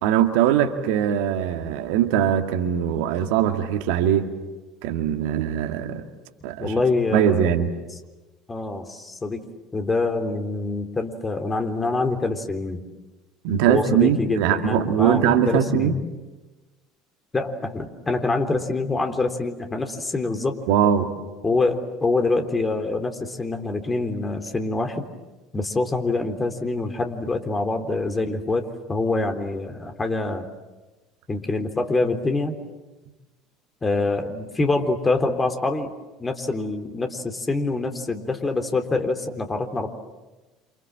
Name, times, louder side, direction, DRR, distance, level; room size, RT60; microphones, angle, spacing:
voice 1, 0.0-4.3 4.8-6.0 6.4-6.7 7.1-7.7 13.4-15.9 20.7-21.1, right 9 dB, 65° right, 6 dB, 2.1 m, -21 dB
voice 2, 6.6-7.6 8.5-9.5 9.7-12.8 13.7-16.0 17.3-20.6 21.4-25.1 25.5-30.5 31.3-32.6 33.8-35.9 36.2-39.9, left 3 dB, 20° left, 6 dB, 3.6 m, -25 dB
28.5 x 28.0 x 7.5 m, 1.2 s
hypercardioid pair, 70°, 0 cm